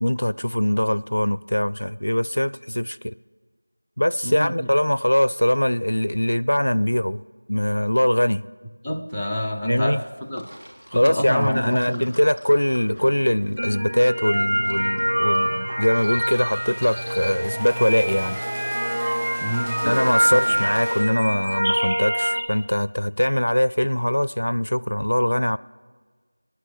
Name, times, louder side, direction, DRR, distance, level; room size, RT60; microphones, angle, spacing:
voice 1, 0.0-3.1 4.0-7.2 7.5-8.5 9.6-10.0 10.9-18.4 19.8-25.6, equal, 80° left, 0.4 m, -22 dB
voice 2, 4.2-4.7 8.8-10.5 10.9-12.1 19.4-19.9 20.3-20.7, equal, ahead, 0.5 m, -28 dB
Sink (filling or washing), 10.1-16.4, equal, 85° right, 3.4 m, -43 dB
sound 1, 13.6-22.4, equal, 50° right, 1.7 m, -25 dB
sound 2, 15.4-21.0, equal, 30° right, 5.7 m, -37 dB
22.5 x 10.0 x 5.0 m
figure-of-eight pair, 175°, 0 cm